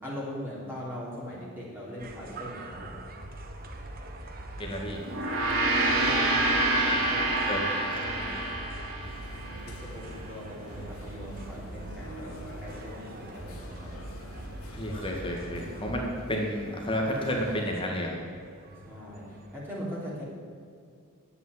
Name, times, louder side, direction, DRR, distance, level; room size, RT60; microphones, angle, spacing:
voice 1, 0.0-3.0 5.9-7.5 8.0-8.4 9.7-14.0 18.8-20.2, equal, 10° right, -7 dB, 3.3 m, -40 dB
sound 1, 2.0-19.6, right 1 dB, 45° right, 1.3 m, -43 dB
voice 2, 4.6-5.0 7.5-7.6 14.7-18.2, equal, 25° left, 0 dB, 1.8 m, -31 dB
Gong, 5.0-9.7, right 2 dB, 70° right, 2.6 m, -27 dB
sound 2, 9.0-17.7, equal, 70° left, 1.8 m, -46 dB
11.0 x 8.5 x 9.7 m, 2.2 s
head